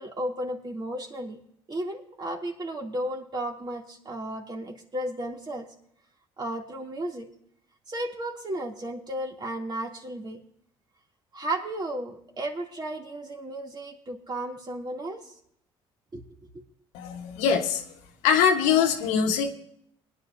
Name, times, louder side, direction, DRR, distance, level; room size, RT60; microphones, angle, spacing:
voice 1, 0.0-1.4 1.7-5.7 6.4-7.3 7.9-10.4 11.3-15.3 16.1-16.2 16.5-16.6, right 1 dB, 35° right, 1 dB, 2.9 m, -34 dB
voice 2, 16.9-17.8 18.2-19.5, left 7 dB, 85° left, 4 dB, 1.4 m, -23 dB
20.5 x 10.5 x 2.8 m, 0.70 s
supercardioid pair, 70°, 12 cm